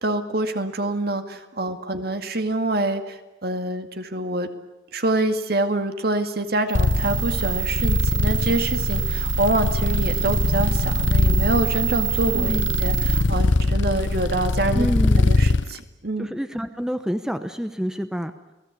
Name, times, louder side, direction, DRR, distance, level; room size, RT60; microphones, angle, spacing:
voice 1, 0.0-4.5 4.9-14.9 15.2-16.3, right 2 dB, 55° right, 7 dB, 2.2 m, -26 dB
sound 1, 6.7-15.7, left 2 dB, 75° left, 0.9 m, -22 dB
sound 2, 6.7-13.2, right 9 dB, 35° right, 4.0 m, -28 dB
sound 3, 10.6-15.3, right 1 dB, 75° right, 1.7 m, -37 dB
voice 2, 12.3-12.7 14.7-15.3 16.2-18.3, equal, 5° right, 9 dB, 0.9 m, -27 dB
29.5 x 19.0 x 8.4 m, 1.0 s
head